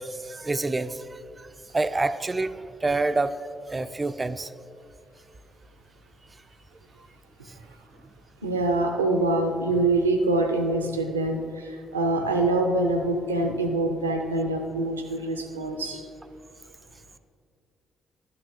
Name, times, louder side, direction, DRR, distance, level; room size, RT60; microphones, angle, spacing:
voice 1, 0.0-1.5 1.7-2.5 2.8-3.3 3.7-4.5, right 3 dB, 25° right, 13 dB, 0.4 m, -27 dB
voice 2, 8.4-16.0, right 2 dB, 85° right, 5 dB, 0.5 m, -25 dB
11.5 x 9.6 x 2.6 m, 2.3 s
figure-of-eight pair, 40°, 0 cm